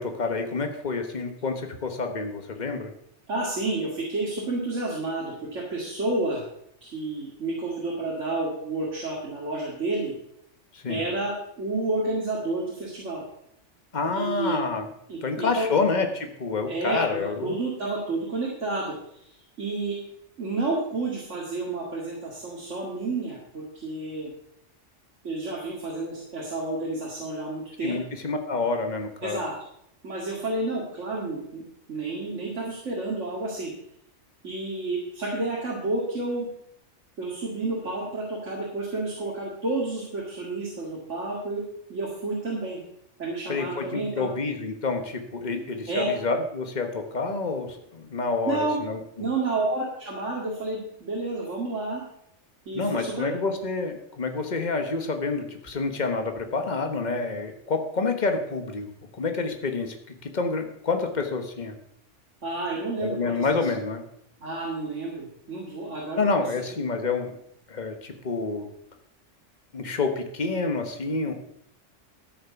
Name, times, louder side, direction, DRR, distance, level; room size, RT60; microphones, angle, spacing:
voice 1, 0.0-2.9 10.7-11.1 13.9-14.9 15.2-17.6 27.8-29.4 43.5-49.0 52.7-61.8 63.0-64.0 66.2-67.4 67.7-68.7 69.7-71.3, left 4 dB, 40° left, 5 dB, 1.4 m, -28 dB
voice 2, 3.3-6.4 6.8-10.1 10.9-13.2 14.1-14.6 15.1-15.7 16.7-19.2 19.6-20.0 20.4-24.3 25.2-28.0 29.2-29.5 30.0-31.6 31.9-33.7 34.4-36.5 37.2-41.6 41.9-42.8 43.2-44.3 45.9-46.1 48.4-48.8 49.2-52.0 52.7-53.3 62.4-63.3 64.4-66.6, right 2 dB, 80° right, -3 dB, 2.6 m, -30 dB
13.5 x 6.6 x 5.9 m, 0.74 s
omnidirectional pair, 1.3 m